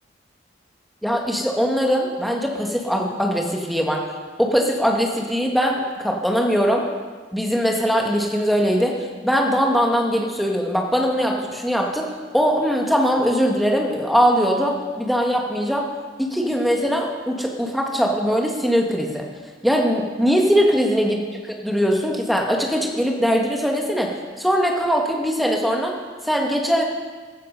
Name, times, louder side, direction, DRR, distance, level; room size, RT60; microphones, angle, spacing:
voice 1, 1.0-4.0 4.4-6.8 7.3-12.1 12.3-15.9 16.2-19.3 19.6-21.2 21.4-24.1 24.4-25.9 26.2-26.8, equal, ahead, 0 dB, 1.7 m, -21 dB
15.0 x 12.5 x 5.4 m, 1.5 s
head